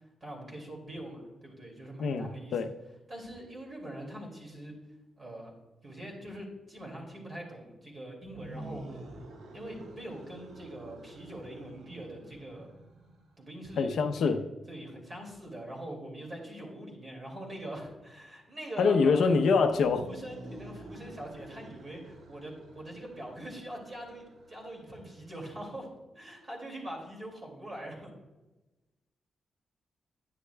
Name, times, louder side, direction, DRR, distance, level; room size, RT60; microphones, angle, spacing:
voice 1, 0.2-2.5 3.1-4.7 5.2-5.5 5.8-9.0 9.5-12.7 13.4-14.3 14.7-19.3 20.0-25.9 26.1-28.1, right 1 dB, 25° right, -1 dB, 2.3 m, -43 dB
voice 2, 2.0-2.7 13.8-14.4 18.8-20.1, left 4 dB, 75° left, 6 dB, 0.7 m, -25 dB
sound 1, 8.2-13.4 19.6-25.3, right 2 dB, 85° right, 1.3 m, -49 dB
9.9 x 9.6 x 2.2 m, 1.1 s
wide cardioid pair, 150°, 0 cm